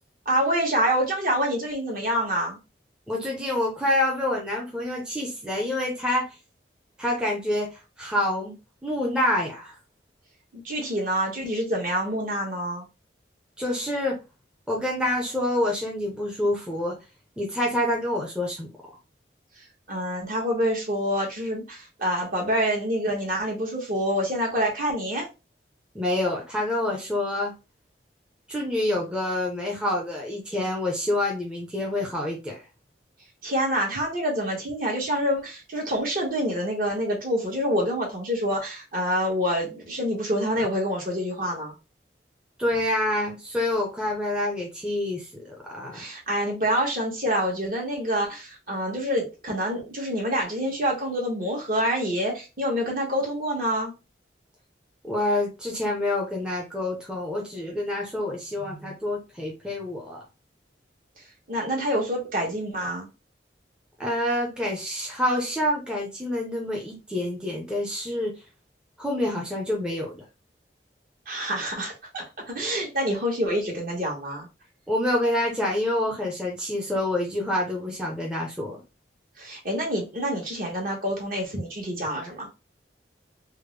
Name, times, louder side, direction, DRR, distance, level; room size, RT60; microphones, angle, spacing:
voice 1, 0.2-2.6 10.6-12.9 19.9-25.3 33.4-41.7 45.9-53.9 61.5-63.1 71.3-74.5 79.4-82.5, equal, 50° right, 1.2 m, -27 dB
voice 2, 3.1-6.4 7.0-8.6 8.8-9.7 13.6-14.2 14.7-16.9 17.4-18.7 25.9-27.5 28.5-32.6 42.6-46.0 55.0-60.2 64.0-68.3 69.0-70.3 74.9-78.8, left 1 dB, 5° right, 0.6 m, -27 dB
3.4 x 2.1 x 3.1 m
head